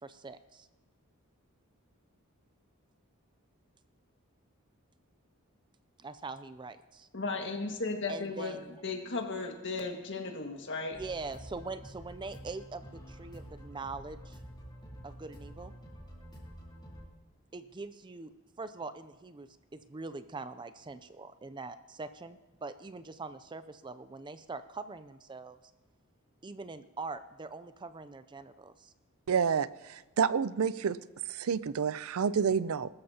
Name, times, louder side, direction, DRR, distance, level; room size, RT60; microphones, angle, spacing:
voice 1, 0.0-0.7 6.0-7.1 8.1-8.8 10.9-14.4 15.0-15.7 17.5-18.3 18.6-25.6 26.4-28.9, right 3 dB, 20° right, 12 dB, 0.5 m, -43 dB
voice 2, 7.1-8.5 8.8-11.0, left 3 dB, 60° left, 3 dB, 1.8 m, -35 dB
sound 1, 10.9-17.1, right 1 dB, 20° left, 3.6 m, -48 dB
voice 3, 29.3-31.0 31.3-32.9, right 6 dB, 80° right, 17 dB, 0.5 m, -29 dB
20.5 x 13.0 x 2.9 m, 1.2 s
head